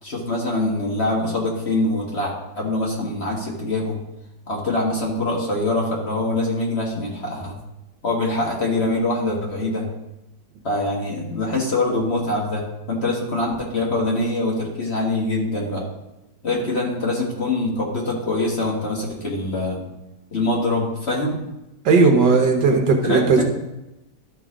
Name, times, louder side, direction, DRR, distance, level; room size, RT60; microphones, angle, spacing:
voice 1, 0.0-4.0 4.5-7.6 8.0-9.9 10.6-15.9 16.4-19.9 20.3-21.4 23.0-23.4, left 2 dB, 35° left, -2 dB, 1.7 m, -24 dB
voice 2, 21.8-23.4, right 4 dB, 70° right, 3 dB, 1.7 m, -16 dB
12.5 x 4.2 x 4.9 m, 0.92 s
omnidirectional pair, 2.0 m